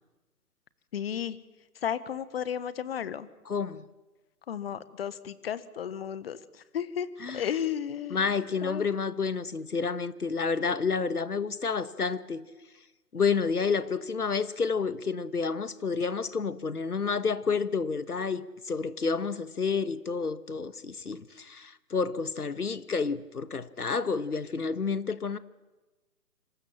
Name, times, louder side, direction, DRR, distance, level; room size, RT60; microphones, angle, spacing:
voice 1, 0.9-1.4 1.8-3.3 4.5-6.4 6.7-7.1 7.3-8.3 8.6-8.9, left 9 dB, 40° left, 1.5 m, -33 dB
voice 2, 3.5-3.8 7.2-7.5 8.1-12.4 13.1-25.4, left 5 dB, 80° left, 1.6 m, -30 dB
26.5 x 26.5 x 7.4 m
figure-of-eight pair, 140°, 45 cm